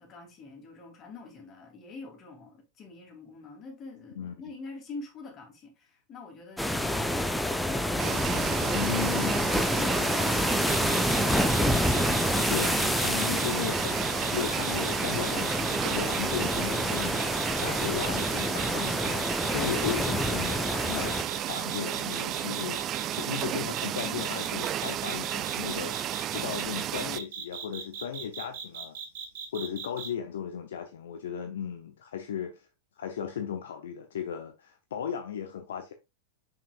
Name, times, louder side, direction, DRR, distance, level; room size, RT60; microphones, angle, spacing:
voice 1, 0.0-11.8, left 3 dB, 30° left, 2.8 m, -46 dB
sound 1, 6.6-21.2, left 1 dB, 5° left, 0.7 m, -28 dB
sound 2, 8.0-27.2, right 12 dB, 30° right, 0.3 m, -33 dB
voice 2, 8.7-9.5 12.5-29.0 29.5-32.7 33.0-35.9, left 8 dB, 60° left, 0.7 m, -36 dB
sound 3, 10.7-23.4 23.7-30.1, right 7 dB, 55° right, 1.4 m, -39 dB
6.7 x 5.9 x 2.5 m
figure-of-eight pair, 90°, 0 cm